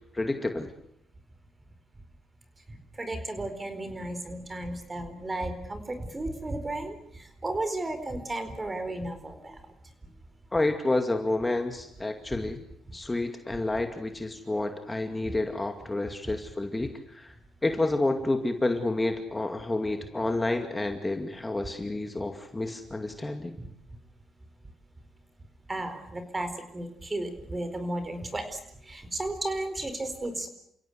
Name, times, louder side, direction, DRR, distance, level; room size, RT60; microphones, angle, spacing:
voice 1, 0.1-0.7 10.5-12.6 12.9-17.3 17.6-23.6, left 2 dB, 15° left, 6 dB, 2.3 m, -29 dB
voice 2, 2.7-9.6 23.6-23.7 25.7-28.6 28.9-30.5, right 2 dB, 20° right, 9 dB, 4.5 m, -34 dB
29.5 x 16.5 x 8.2 m, 0.76 s
cardioid pair, 90°, 0 cm